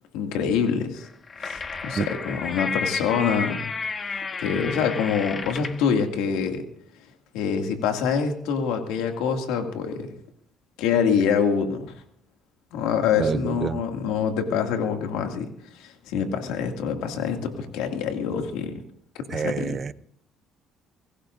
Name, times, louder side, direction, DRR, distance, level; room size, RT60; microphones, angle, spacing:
voice 1, 0.1-1.1 1.4-3.6 4.4-6.6 7.3-10.1 10.8-11.9 12.7-15.5 15.8-18.7 19.1-19.7, left 6 dB, 85° left, 2.3 m, -25 dB
sound 1, 1.0-5.9, left 4 dB, 40° left, 1.6 m, -32 dB
voice 2, 13.2-13.8 19.3-19.9, right 6 dB, 45° right, 0.7 m, -27 dB
24.0 x 18.0 x 2.6 m
supercardioid pair, 70°, 0 cm